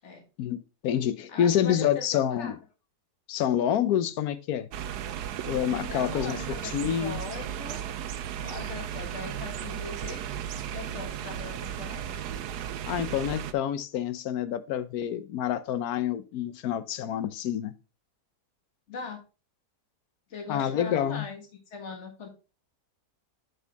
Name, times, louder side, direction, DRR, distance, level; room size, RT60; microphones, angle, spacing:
voice 1, 0.4-2.6 3.3-4.7 5.4-7.2 12.9-17.7 20.5-21.3, left 10 dB, 70° left, 1.1 m, -28 dB
voice 2, 1.3-2.5 5.9-7.9 8.4-10.2 10.7-12.2 18.9-19.2 20.3-21.4 21.7-22.3, left 4 dB, 45° left, 1.9 m, -40 dB
sound 1, 4.7-13.5, right 9 dB, 90° right, 1.2 m, -35 dB
7.9 x 5.5 x 3.4 m
omnidirectional pair, 1.7 m